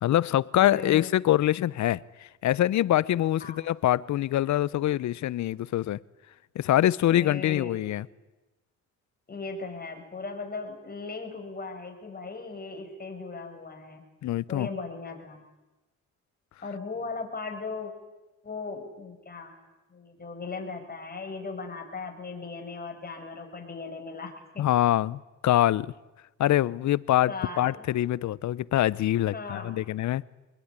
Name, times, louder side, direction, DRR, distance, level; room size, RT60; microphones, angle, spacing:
voice 1, 0.0-2.0 2.4-6.0 6.5-8.1 14.2-14.7 24.6-25.9 26.4-30.2, left 13 dB, 70° left, 21 dB, 0.8 m, -24 dB
voice 2, 0.6-1.1 3.4-3.6 7.1-7.8 9.3-14.1 14.5-15.4 16.6-17.9 18.4-19.5 19.9-24.7 27.3-27.9 29.3-29.8, left 4 dB, 30° left, 3 dB, 6.7 m, -38 dB
25.5 x 20.5 x 9.9 m, 1.1 s
cardioid pair, 90°, 30 cm